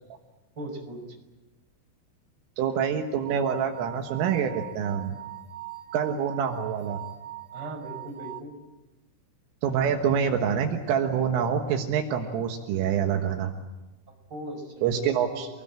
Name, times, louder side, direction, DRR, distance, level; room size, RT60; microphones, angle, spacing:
voice 1, 0.6-1.0 7.5-8.5 14.3-15.4, right 1 dB, 20° right, 3 dB, 5.9 m, -38 dB
voice 2, 2.6-5.2 5.9-7.0 9.6-13.5 14.8-15.5, right 7 dB, 75° right, 4 dB, 3.9 m, -26 dB
sound 1, 3.2-8.4, right 15 dB, 55° right, 2.2 m, -41 dB
28.0 x 20.0 x 8.9 m, 1.1 s
omnidirectional pair, 5.9 m